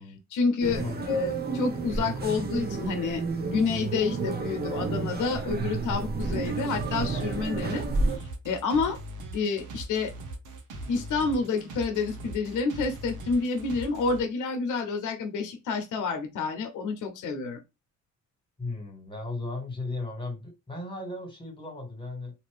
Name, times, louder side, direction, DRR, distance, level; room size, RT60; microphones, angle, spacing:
voice 1, 0.3-7.9 8.2-9.0 9.3-10.1 10.9-17.6, left 4 dB, 80° left, 0.8 m, -29 dB
sound 1, 0.6-8.2, right 4 dB, 35° right, 0.7 m, -31 dB
sound 2, 6.2-14.2, right 1 dB, 80° right, 0.9 m, -40 dB
voice 2, 18.6-22.3, left 2 dB, 15° left, 1.6 m, -36 dB
2.8 x 2.5 x 3.3 m
cardioid pair, 90°, 30 cm